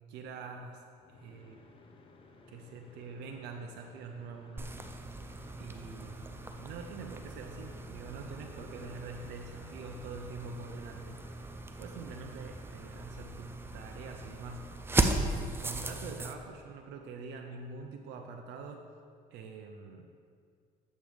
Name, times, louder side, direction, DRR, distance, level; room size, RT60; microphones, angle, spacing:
voice 1, 0.1-0.8 1.1-1.6 2.5-4.8 5.6-11.2 11.8-14.7 15.1-18.8 19.3-20.1, right 4 dB, 80° right, 4 dB, 0.6 m, -45 dB
sound 1, 1.0-11.7, left 3 dB, 30° left, 0.8 m, -57 dB
sound 2, 4.6-16.3, right 2 dB, 15° right, 0.4 m, -37 dB
8.1 x 7.3 x 3.4 m, 2.2 s
cardioid pair, 110°, 17 cm